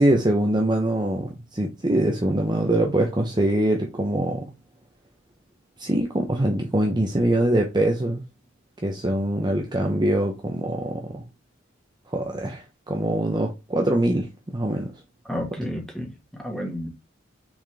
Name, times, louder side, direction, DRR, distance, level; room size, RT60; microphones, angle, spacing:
voice 1, 0.0-4.5 5.8-8.2 8.8-11.2 12.1-14.9, right 1 dB, 20° right, 0.9 m, -23 dB
voice 2, 15.3-16.9, equal, 5° left, 1.9 m, -31 dB
6.1 x 4.3 x 3.5 m
head